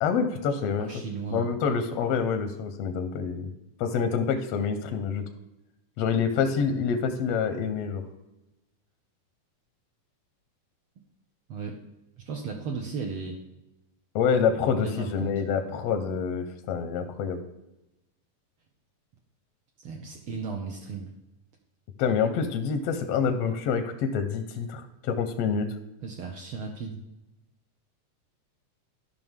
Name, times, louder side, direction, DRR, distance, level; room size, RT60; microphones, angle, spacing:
voice 1, 0.0-0.9 1.3-3.5 3.8-5.2 6.0-8.0 14.1-17.4 22.0-25.7, left 6 dB, 75° left, 7 dB, 1.5 m, -27 dB
voice 2, 0.8-1.5 11.5-11.8 12.2-13.4 14.7-15.3 19.8-21.1 26.0-27.0, right 5 dB, 85° right, 1 dB, 1.2 m, -35 dB
12.5 x 5.5 x 3.6 m, 0.92 s
omnidirectional pair, 3.6 m